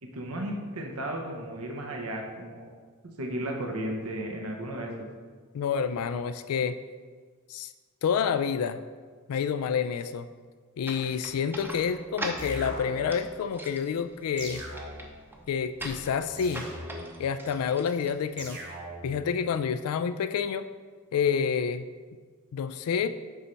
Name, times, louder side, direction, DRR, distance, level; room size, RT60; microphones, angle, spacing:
voice 1, 0.0-2.7 3.2-5.1, right 1 dB, 80° right, 2 dB, 1.0 m, -34 dB
voice 2, 5.5-6.8 7.5-7.7 8.0-8.8 9.3-10.3 10.8-14.6 15.5-16.7 17.2-18.6 19.0-20.7 21.1-21.9 22.5-23.1, left 7 dB, 85° left, 11 dB, 0.3 m, -28 dB
sound 1, 10.8-18.7, right 1 dB, 10° right, 0.7 m, -42 dB
sound 2, 12.4-13.3 14.4-15.3 16.4-17.3 18.4-19.3, right 1 dB, 55° right, 1.6 m, -40 dB
6.9 x 5.2 x 4.4 m, 1.5 s
head